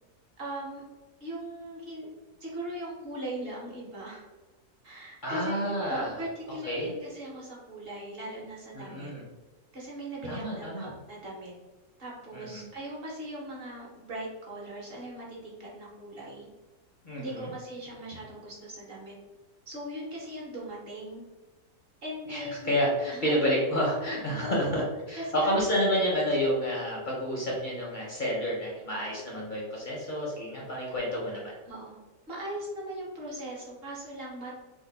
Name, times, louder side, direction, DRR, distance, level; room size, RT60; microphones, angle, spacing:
voice 1, 0.4-0.8 1.2-2.1 2.4-4.2 4.8-5.6 5.9-9.1 9.7-11.5 12.0-16.5 17.2-19.1 19.7-21.2 22.0-22.7 23.1-23.5 24.4-24.8 25.1-25.6 31.6-32.0 32.3-34.5, right 1 dB, 45° right, -4 dB, 0.9 m, -39 dB
voice 2, 5.2-6.1 6.7-6.9 8.7-9.2 10.3-10.9 12.3-12.7 17.0-17.5 22.3-31.5, equal, 45° left, -4 dB, 0.6 m, -29 dB
2.8 x 2.5 x 3.9 m, 1.2 s
omnidirectional pair, 1.6 m